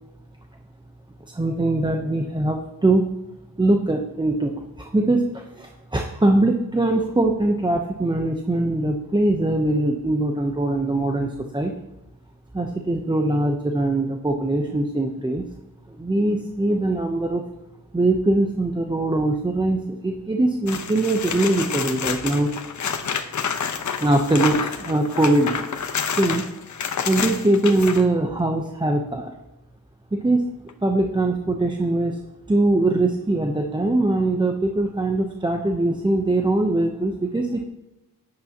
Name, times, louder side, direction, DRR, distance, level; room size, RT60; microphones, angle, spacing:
voice 1, 1.3-3.1 3.6-11.7 12.5-15.4 16.0-17.4 17.9-22.5 24.0-25.6 26.2-26.4 27.1-29.3 30.1-30.4 30.8-32.1 32.5-37.6, right 2 dB, 15° right, 3 dB, 0.7 m, -22 dB
sound 1, 20.7-28.0 30.7-30.8, left 6 dB, 55° left, 0.9 m, -28 dB
14.0 x 10.5 x 2.9 m, 0.97 s
wide cardioid pair, 125°, 36 cm